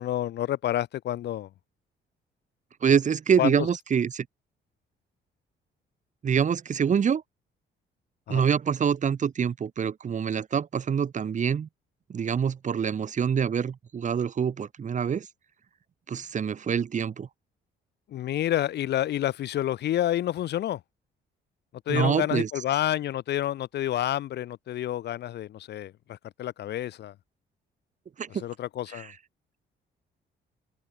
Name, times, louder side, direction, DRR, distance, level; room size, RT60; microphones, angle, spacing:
voice 1, 0.0-1.5 3.4-3.5 8.3-8.4 18.1-20.8 21.9-27.1 28.4-29.1, left 12 dB, 60° left, 0.5 m, -29 dB
voice 2, 2.8-4.3 6.2-7.2 8.3-11.7 12.1-15.3 16.1-17.3 21.9-22.5 28.2-28.4 28.9-29.1, right 7 dB, 40° right, 0.9 m, -26 dB
open air
cardioid pair, 90°, 20 cm